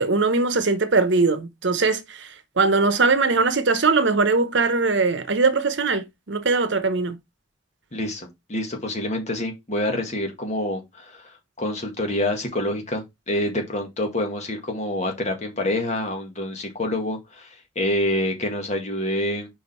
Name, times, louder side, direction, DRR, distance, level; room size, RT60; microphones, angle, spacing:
voice 1, 0.0-7.2, right 3 dB, 65° right, 0.9 m, -21 dB
voice 2, 7.9-19.5, left 1 dB, 35° left, 1.8 m, -27 dB
5.0 x 5.0 x 4.3 m
head